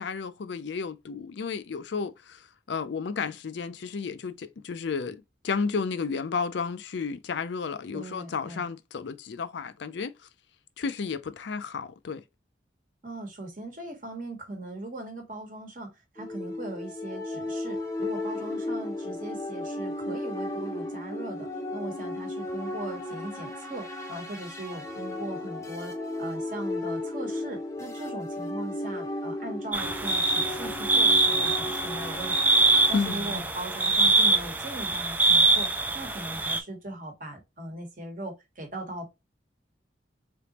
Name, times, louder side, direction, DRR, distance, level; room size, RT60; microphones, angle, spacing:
voice 1, 0.0-10.2 10.8-12.2 32.9-33.4, left 5 dB, 70° left, 0.4 m, -32 dB
voice 2, 7.9-8.7 13.0-32.6 32.9-39.1, right 1 dB, 45° right, 1.2 m, -39 dB
sound 1, 16.2-33.4, left 1 dB, 15° left, 0.7 m, -35 dB
sound 2, 29.7-36.6, right 2 dB, 10° right, 0.4 m, -24 dB
3.8 x 3.4 x 2.9 m
head